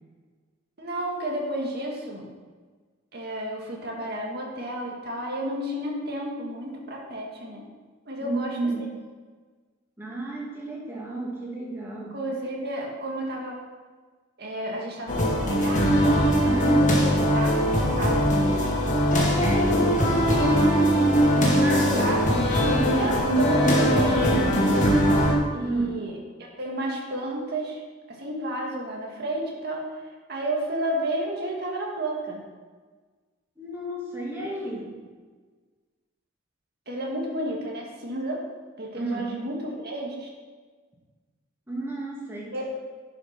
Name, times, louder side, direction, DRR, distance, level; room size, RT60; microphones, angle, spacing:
voice 1, 0.8-2.3 3.1-7.6 8.1-8.6 12.1-13.6 14.4-16.1 16.4-18.4 21.2-22.2 22.9-24.9 25.5-26.1 26.6-27.8 28.1-29.9 30.3-32.4 36.9-38.4 38.8-40.3 42.5-42.6, right 1 dB, 55° right, -1 dB, 2.0 m, -31 dB
voice 2, 8.2-8.9 10.0-12.2 16.4-16.8 19.4-20.0 21.4-22.3 25.6-26.0 33.6-35.0 38.9-39.4 41.7-42.8, right 2 dB, 10° right, -4 dB, 2.4 m, -32 dB
sound 1, 15.1-25.3, equal, 40° left, 2.1 m, -21 dB
10.5 x 5.8 x 5.8 m, 1.4 s
head